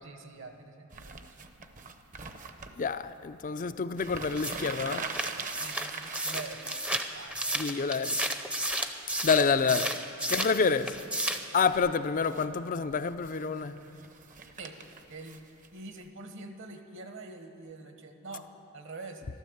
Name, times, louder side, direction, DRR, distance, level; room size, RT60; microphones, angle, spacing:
voice 1, 0.0-1.1 5.6-6.7 7.1-7.6 8.2-8.4 9.9-10.0 10.4-10.7 14.6-14.8 15.1-15.4 15.7-18.5 18.7-19.2, right 3 dB, 60° right, 1.3 m, -45 dB
sound 1, 0.9-2.7 3.6-3.7 3.9-8.3 8.7-9.6 10.5-11.1 11.5-11.9 12.1-12.5 12.9-16.0, right 4 dB, 35° right, 0.8 m, -43 dB
voice 2, 2.8-5.1 7.5-8.2 9.2-9.9 10.3-10.9 11.5-13.8, left 5 dB, 40° left, 0.4 m, -28 dB
sound 2, 4.4-10.6 10.9-11.5, right 1 dB, 5° right, 0.6 m, -32 dB
13.5 x 12.5 x 7.9 m
head